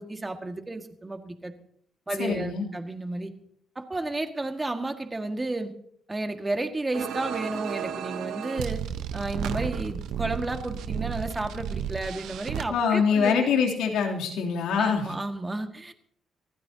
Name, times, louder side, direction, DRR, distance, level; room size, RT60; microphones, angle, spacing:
voice 1, 0.0-1.5 2.1-3.3 3.8-5.7 6.1-8.8 9.1-13.5 14.8-15.9, right 2 dB, 20° right, 6 dB, 1.8 m, -32 dB
voice 2, 2.2-2.7 12.7-15.1, left 6 dB, 85° left, 0 dB, 3.0 m, -24 dB
sound 1, 6.9-12.6, right 9 dB, 85° right, 0.9 m, -33 dB
24.0 x 15.5 x 2.8 m, 0.65 s
cardioid pair, 90°, 0 cm